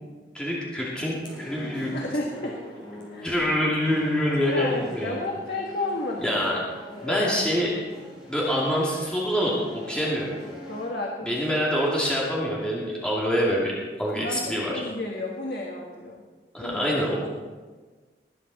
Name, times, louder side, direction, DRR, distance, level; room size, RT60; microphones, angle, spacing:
voice 1, 0.3-2.0 3.2-5.2 6.2-6.6 7.0-7.7 8.3-10.4 11.3-14.8 16.5-17.3, equal, 5° left, -6 dB, 2.4 m, -26 dB
sound 1, 1.2-10.9, left 1 dB, 25° left, 3.8 m, -43 dB
voice 2, 1.9-2.6 3.1-3.4 4.5-6.3 6.9-7.3 10.7-11.4 14.1-14.4 14.7-16.2 16.6-16.8, left 2 dB, 65° left, -1 dB, 1.6 m, -32 dB
20.0 x 9.3 x 4.2 m, 1.4 s
head